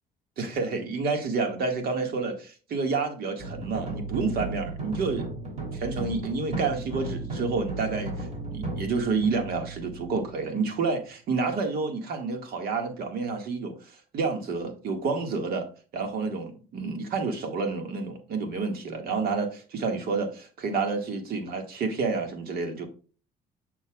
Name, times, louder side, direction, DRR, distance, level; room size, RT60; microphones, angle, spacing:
voice 1, 0.4-5.3 5.7-15.7 15.9-22.9, right 4 dB, 65° right, 5 dB, 1.8 m, -29 dB
sound 1, 3.4-10.7, right 2 dB, 40° right, 3.2 m, -35 dB
7.0 x 6.6 x 2.4 m, 0.37 s
cardioid pair, 110°, 17 cm